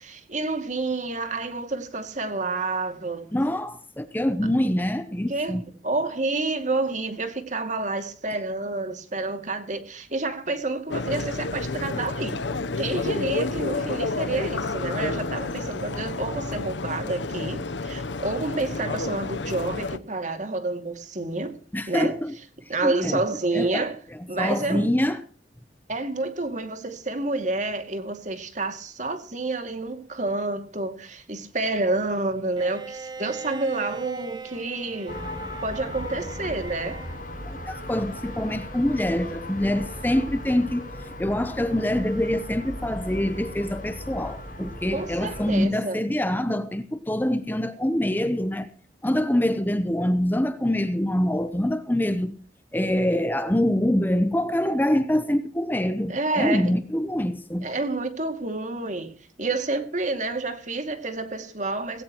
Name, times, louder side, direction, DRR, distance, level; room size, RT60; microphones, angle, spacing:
voice 1, 0.0-3.3 5.3-12.4 12.8-21.6 21.9-22.1 22.7-24.0 24.3-24.9 25.9-35.2 35.6-37.0 44.9-46.0 56.1-56.7 57.6-62.0, right 2 dB, 40° right, 2.4 m, -29 dB
voice 2, 3.3-5.6 21.7-22.3 22.6-23.2 23.5-23.9 24.4-25.2 37.4-48.7 49.0-52.4 52.7-57.7, left 1 dB, 10° left, 0.8 m, -25 dB
sound 1, 10.9-20.0, left 3 dB, 75° left, 0.9 m, -30 dB
Bowed string instrument, 32.6-37.2, right 4 dB, 25° right, 1.6 m, -40 dB
sound 2, 35.1-45.6, left 1 dB, 45° left, 6.1 m, -37 dB
18.0 x 17.0 x 3.0 m
head